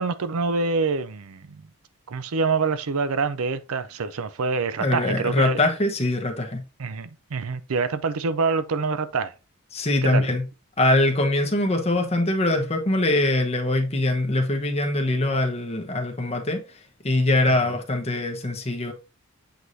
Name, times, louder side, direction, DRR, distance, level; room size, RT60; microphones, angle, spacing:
voice 1, 0.0-1.6 2.1-5.6 6.8-9.3 10.0-10.3 17.5-17.6, right 4 dB, 70° right, 0.5 m, -26 dB
voice 2, 4.8-6.6 9.7-10.4 10.8-16.6 17.0-18.9, left 2 dB, 30° left, 1.1 m, -23 dB
8.0 x 4.8 x 2.7 m
head